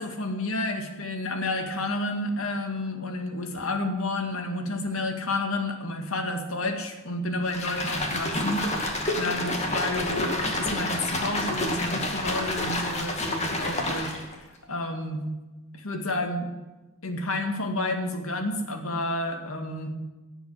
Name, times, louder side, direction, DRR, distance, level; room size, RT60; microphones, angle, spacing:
voice 1, 0.0-8.7 9.1-14.1 14.7-15.3 15.7-16.5 17.0-19.9, left 2 dB, 85° left, 5 dB, 2.0 m, -30 dB
sound 1, 7.5-14.3, left 1 dB, 35° left, 2.3 m, -29 dB
17.5 x 8.0 x 6.6 m, 1.1 s
head